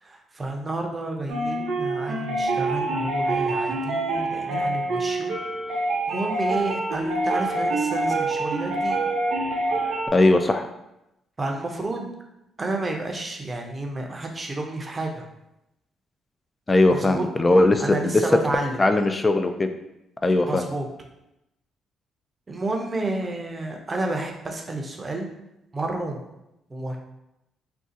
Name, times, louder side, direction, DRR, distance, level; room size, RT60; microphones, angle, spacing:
voice 1, 0.0-5.3 6.1-9.0 11.4-12.1 12.6-15.3 16.9-17.3 17.8-18.8 20.4-20.9 22.5-25.3 25.7-26.2 26.7-27.0, right 2 dB, 25° right, 2 dB, 0.6 m, -30 dB
sound 1, 1.3-10.1, right 2 dB, 75° right, 0.7 m, -26 dB
voice 2, 10.1-10.7 16.7-18.2 18.8-19.7 20.2-20.6, left 2 dB, 25° left, 7 dB, 0.3 m, -19 dB
2.6 x 2.3 x 3.8 m, 0.87 s
cardioid pair, 90°, 0 cm